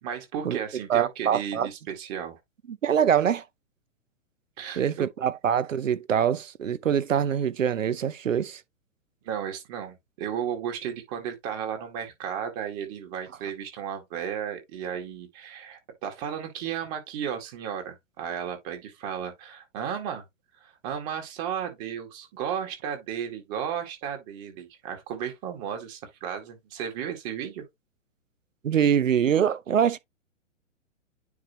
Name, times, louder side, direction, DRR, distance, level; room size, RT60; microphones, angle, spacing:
voice 1, 0.0-2.4 4.6-5.1 9.2-20.3 20.6-27.6, right 8 dB, 35° right, 2.0 m, -34 dB
voice 2, 0.9-1.7 2.7-3.4 4.8-8.6 28.6-30.0, right 8 dB, 80° right, 0.7 m, -24 dB
9.5 x 3.3 x 3.0 m
figure-of-eight pair, 120°, 38 cm